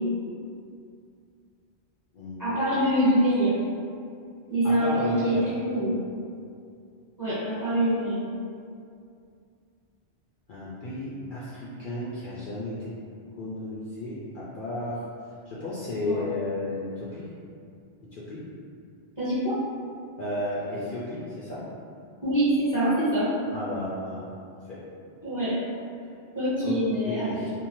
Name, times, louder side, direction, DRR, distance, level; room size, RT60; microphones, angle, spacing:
voice 1, 2.4-3.5 4.5-5.9 7.2-8.2 16.1-16.2 19.2-19.6 22.2-23.3 25.2-25.6 26.3-27.3, equal, 20° right, -13 dB, 0.8 m, -24 dB
voice 2, 4.6-5.5 10.5-12.9 13.4-15.0 15.5-17.3 18.1-18.4 20.2-21.6 23.5-24.2 24.7-24.8 26.6-26.7 27.0-27.5, left 1 dB, 60° left, -9 dB, 0.6 m, -33 dB
2.6 x 2.1 x 2.9 m, 2.4 s
omnidirectional pair, 1.1 m